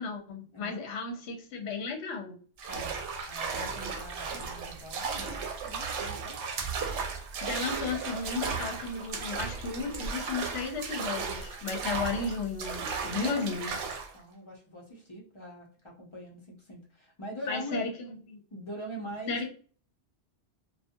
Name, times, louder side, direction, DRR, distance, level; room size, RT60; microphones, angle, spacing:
voice 1, 0.0-2.4 7.4-13.8 17.5-17.9 18.3-18.4 19.3-19.5, left 4 dB, 75° left, 2 dB, 0.9 m, -34 dB
voice 2, 0.5-0.8 2.7-3.0 3.3-6.4 13.0-13.5 14.1-17.8 18.5-19.5, equal, 35° left, -1 dB, 0.5 m, -43 dB
sound 1, 2.6-14.1, right 5 dB, 80° right, 0.9 m, -35 dB
2.5 x 2.3 x 2.5 m, 0.42 s
omnidirectional pair, 1.2 m